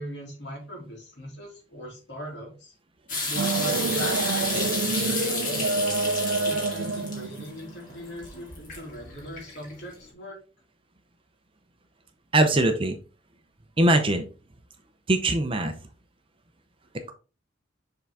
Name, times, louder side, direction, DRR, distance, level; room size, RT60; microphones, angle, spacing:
voice 1, 0.0-2.7 3.2-5.6 6.4-10.4, equal, 60° left, -1 dB, 2.6 m, -39 dB
sound 1, 3.1-9.9, left 3 dB, 45° left, 2.2 m, -32 dB
sound 2, 3.4-8.5, right 4 dB, 70° right, 0.4 m, -28 dB
voice 2, 12.3-13.0 13.8-14.3 15.1-15.7, right 1 dB, 25° right, 7 dB, 0.7 m, -21 dB
7.1 x 3.9 x 3.5 m, 0.34 s
head